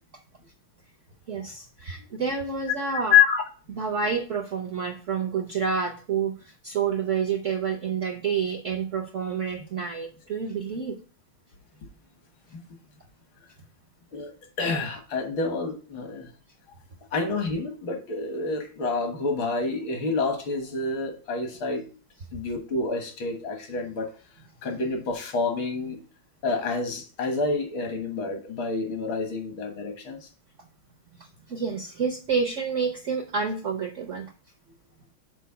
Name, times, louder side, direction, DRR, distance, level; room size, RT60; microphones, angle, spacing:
voice 1, 1.3-3.2 3.8-11.0 31.2-34.3, right 6 dB, 65° right, 4 dB, 0.7 m, -29 dB
voice 2, 2.9-3.4 14.1-14.3 14.6-16.3 17.1-21.8 22.3-24.1 24.6-26.0 26.4-30.3, left 5 dB, 75° left, 5 dB, 2.2 m, -27 dB
6.2 x 4.3 x 5.6 m, 0.37 s
omnidirectional pair, 2.2 m